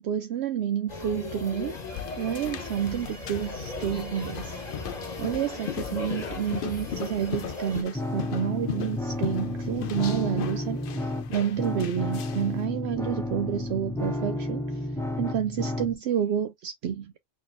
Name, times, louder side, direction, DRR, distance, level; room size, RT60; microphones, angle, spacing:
voice 1, 0.0-1.8 2.2-4.6 5.2-10.8 11.3-14.9 15.2-17.1, right 9 dB, 70° right, 0.8 m, -29 dB
sound 1, 0.9-7.8, left 3 dB, 40° left, 1.5 m, -37 dB
sound 2, 1.7-12.6, left 9 dB, 60° left, 0.7 m, -38 dB
sound 3, 7.9-15.9, left 1 dB, 5° left, 0.5 m, -32 dB
4.3 x 3.6 x 2.5 m
omnidirectional pair, 1.2 m